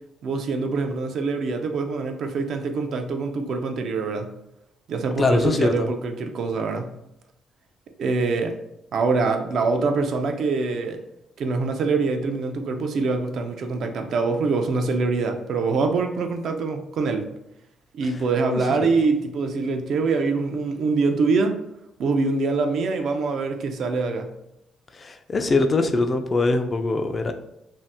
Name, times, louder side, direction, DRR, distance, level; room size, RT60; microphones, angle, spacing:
voice 1, 0.2-4.3 4.9-6.9 8.0-8.6 8.9-11.0 11.4-17.3 17.9-21.6 22.0-24.3, right 4 dB, 65° right, 5 dB, 0.4 m, -24 dB
voice 2, 5.2-5.9 18.5-18.9 24.9-27.3, left 3 dB, 35° left, 7 dB, 0.3 m, -22 dB
2.6 x 2.1 x 3.4 m, 0.84 s
cardioid pair, 90°, 0 cm